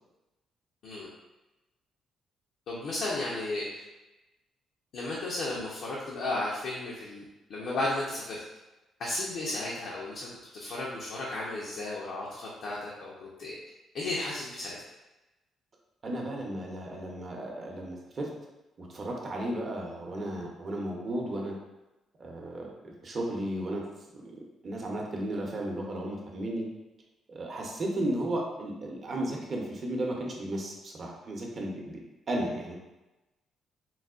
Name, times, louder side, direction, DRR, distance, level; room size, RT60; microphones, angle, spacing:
voice 1, 2.7-3.8 4.9-8.4 9.0-10.3 10.5-13.6 13.9-14.8, left 2 dB, 70° left, -5 dB, 0.6 m, -34 dB
voice 2, 16.0-18.3 18.8-21.6 22.2-23.9 24.1-26.7 27.3-32.0 32.3-32.8, right 1 dB, 45° right, -1 dB, 0.7 m, -34 dB
3.9 x 2.1 x 2.4 m, 1.0 s
cardioid pair, 90°, 0 cm